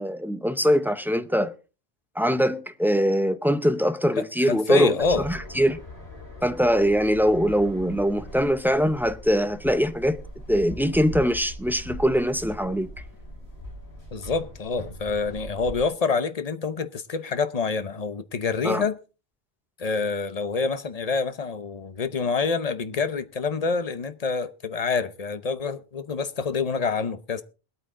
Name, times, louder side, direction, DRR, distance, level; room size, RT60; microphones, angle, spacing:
voice 1, 0.0-1.5 2.2-5.8 6.4-10.2 10.5-12.9 18.6-18.8, equal, 5° right, 0.5 m, -22 dB
voice 2, 4.2-5.3 14.1-19.0 19.8-27.4, left 4 dB, 40° left, 0.8 m, -27 dB
sound 1, 5.0-15.9, equal, 70° left, 4.5 m, -40 dB
21.0 x 8.7 x 3.7 m
omnidirectional pair, 1.1 m